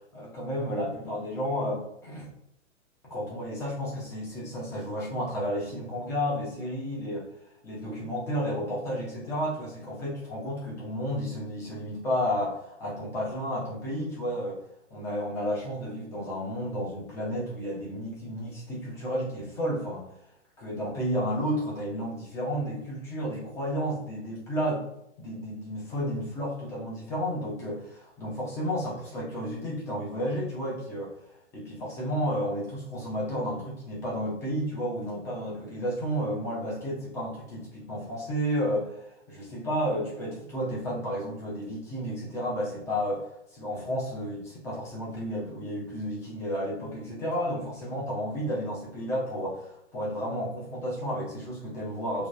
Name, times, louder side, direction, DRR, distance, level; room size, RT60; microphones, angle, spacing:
voice 1, 0.1-2.3 3.0-7.3 7.6-14.6 14.9-20.0 20.6-24.9 25.2-31.1 31.5-52.3, equal, 10° left, -5 dB, 0.4 m, -32 dB
2.8 x 2.2 x 2.4 m, 0.79 s
figure-of-eight pair, 115°, 36 cm